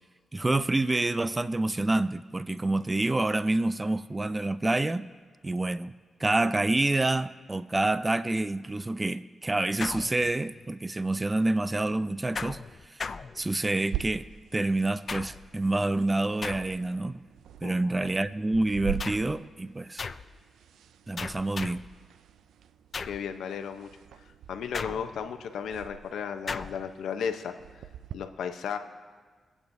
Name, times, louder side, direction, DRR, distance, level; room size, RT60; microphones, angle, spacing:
voice 1, 0.3-5.1 5.4-5.9 6.2-12.6 12.9-13.0 13.4-14.3 14.5-17.2 17.6-20.0 21.1-21.9, right 2 dB, 25° right, 14 dB, 0.5 m, -27 dB
sound 1, 9.8-10.7 12.4-13.9 15.1-15.6 16.4-17.0 19.0-19.4 20.0-20.4 21.2-22.0 22.9-23.3 24.7-25.4 26.5-26.9, left 5 dB, 55° left, 0.4 m, -37 dB
sound 2, 13.9-28.1, right 11 dB, 90° right, 0.4 m, -43 dB
voice 2, 23.0-23.9 24.5-27.5 28.1-28.8, left 7 dB, 85° left, 7 dB, 0.7 m, -34 dB
24.5 x 8.6 x 2.7 m, 1.5 s
cardioid pair, 55°, 0 cm